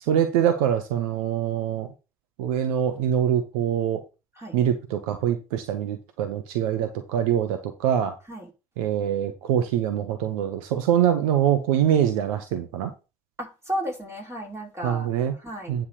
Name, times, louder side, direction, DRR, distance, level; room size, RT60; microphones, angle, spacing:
voice 1, 0.1-1.9 2.4-4.0 4.5-8.2 8.8-12.9 14.8-15.3 15.7-15.9, right 9 dB, 65° right, 1.1 m, -24 dB
voice 2, 13.4-15.1 15.4-15.8, equal, 15° right, 4.2 m, -33 dB
9.7 x 3.7 x 6.5 m
figure-of-eight pair, 60°, 19 cm